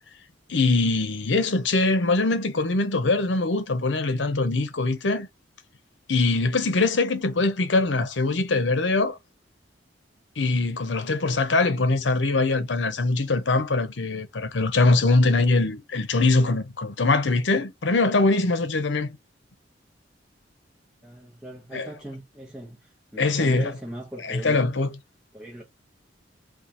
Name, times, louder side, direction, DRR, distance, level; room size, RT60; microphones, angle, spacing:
voice 1, 0.5-5.3 6.1-9.2 10.4-19.2 21.7-21.9 23.2-23.7 24.2-24.9, left 3 dB, 75° left, 0.8 m, -22 dB
voice 2, 21.0-24.6 25.3-25.6, right 1 dB, 5° right, 1.0 m, -39 dB
4.4 x 2.4 x 3.8 m
head